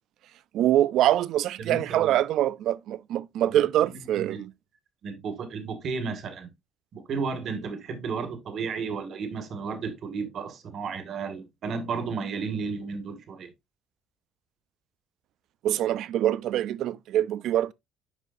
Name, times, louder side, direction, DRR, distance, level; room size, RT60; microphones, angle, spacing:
voice 1, 0.5-4.5 15.6-17.7, right 12 dB, 65° right, 0.4 m, -24 dB
voice 2, 1.6-2.2 3.5-4.4 5.0-6.5 6.9-13.5, right 5 dB, 45° right, 1.8 m, -33 dB
11.0 x 4.8 x 2.6 m
cardioid pair, 155°, 0 cm